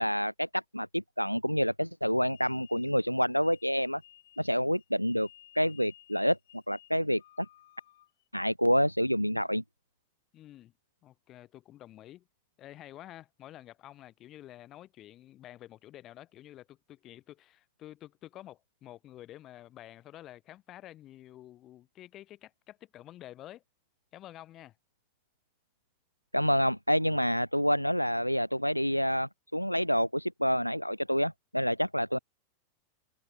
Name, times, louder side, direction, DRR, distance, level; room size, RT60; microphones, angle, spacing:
voice 1, 0.0-4.0 4.4-5.3 5.6-6.4 6.7-7.5 8.3-9.6 26.3-32.2, equal, 90° left, 0.3 m, -28 dB
sound 1, 2.3-8.3, left 13 dB, 60° left, 6.0 m, -58 dB
voice 2, 10.3-10.7 11.0-12.3 12.6-23.6 24.1-24.8, left 13 dB, 35° left, 6.1 m, -50 dB
figure-of-eight pair, 90°, 0 cm